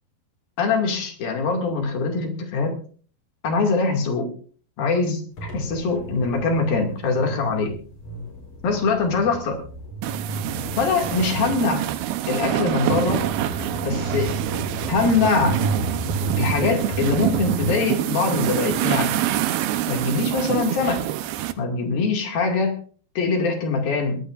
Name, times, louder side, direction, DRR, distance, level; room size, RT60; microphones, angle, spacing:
voice 1, 0.6-2.7 3.4-4.3 4.8-7.7 8.6-9.6 10.8-11.8 12.3-13.2 13.8-14.3 14.9-15.6 16.4-19.1 19.9-21.0 21.6-22.8 23.2-24.2, left 4 dB, 75° left, 2 dB, 4.2 m, -23 dB
sound 1, 5.4-17.8, right 3 dB, 45° left, 5.6 m, -31 dB
sound 2, 10.0-21.5, right 13 dB, 85° right, 2.8 m, -26 dB
22.5 x 15.0 x 2.6 m, 0.44 s
omnidirectional pair, 4.3 m